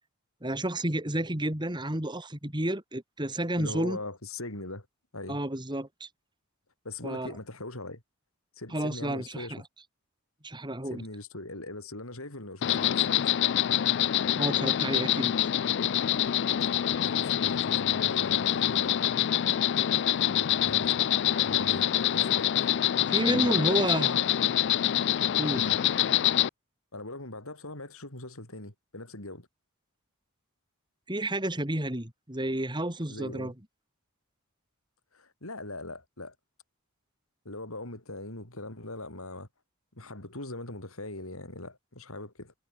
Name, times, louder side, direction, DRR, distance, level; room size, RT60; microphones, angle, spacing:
voice 1, 0.4-4.0 5.3-6.1 7.0-7.4 8.7-9.6 10.4-11.0 14.4-15.5 23.1-24.2 25.4-25.7 31.1-33.5, right 1 dB, 20° right, 3.0 m, -31 dB
voice 2, 3.6-4.9 5.1-5.4 6.8-8.0 8.6-9.5 10.9-13.3 16.7-19.1 20.1-21.0 21.4-22.5 23.3-24.3 25.5-25.8 26.9-29.5 33.1-33.5 35.1-36.3 37.5-39.5 40.0-42.5, left 2 dB, 70° left, 5.6 m, -40 dB
Insect, 12.6-26.5, left 11 dB, 50° left, 0.4 m, -26 dB
head